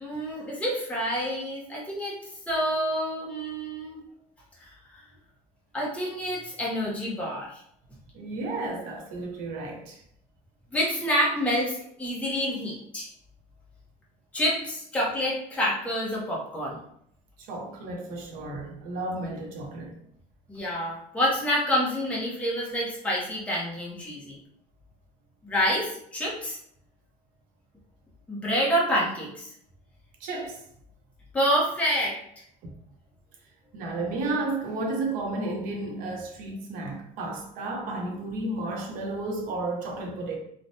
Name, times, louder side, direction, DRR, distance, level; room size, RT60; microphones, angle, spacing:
voice 1, 0.0-2.2 2.5-4.0 4.6-4.7 5.7-7.6 10.7-13.1 14.3-16.8 20.5-24.4 25.4-26.6 28.3-29.5 31.3-32.2, equal, 10° left, 0.7 m, -27 dB
voice 2, 8.1-10.0 17.4-19.9 30.2-30.6 32.6-32.7 33.7-40.4, right 2 dB, 65° right, 0.7 m, -32 dB
3.1 x 2.1 x 2.7 m
cardioid pair, 165°, 15 cm